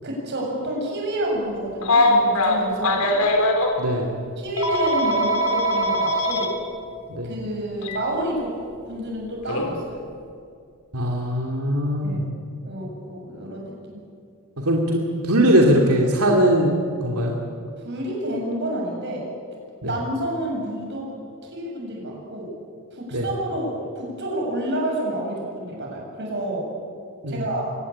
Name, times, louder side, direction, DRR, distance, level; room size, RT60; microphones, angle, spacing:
voice 1, 0.0-3.2 4.4-6.5 7.2-8.6 8.9-10.1 12.0-12.2 12.6-14.0 17.8-19.3 19.8-21.1 21.4-22.5 22.9-26.7 27.3-27.7, right 1 dB, 50° right, -1 dB, 7.6 m, -29 dB
Telephone, 1.8-3.7 4.6-6.5 7.8-8.0 9.5-9.7, left 1 dB, 80° left, 3.7 m, -21 dB
voice 2, 3.8-4.2 7.1-7.3 10.9-12.2 14.6-17.4 19.8-19.9 23.1-23.3 27.2-27.4, equal, 85° right, 0 dB, 2.8 m, -20 dB
24.5 x 18.5 x 8.8 m, 2.3 s
head